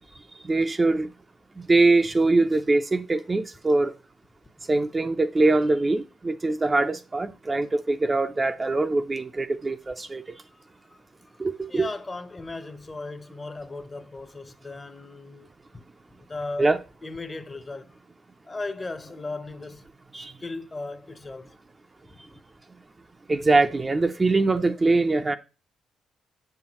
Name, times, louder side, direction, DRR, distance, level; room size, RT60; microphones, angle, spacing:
voice 1, 0.4-1.1 1.7-3.9 4.7-10.2 11.4-11.9 16.6-16.8 20.1-20.3 23.3-25.4, right 3 dB, 25° right, 0.4 m, -22 dB
voice 2, 10.5-11.0 11.7-15.5 16.2-16.7 17.0-18.0 18.4-19.9 20.1-21.5 22.2-22.3, left 3 dB, 25° left, 0.7 m, -37 dB
7.0 x 5.7 x 2.9 m
cardioid pair, 90°, 0 cm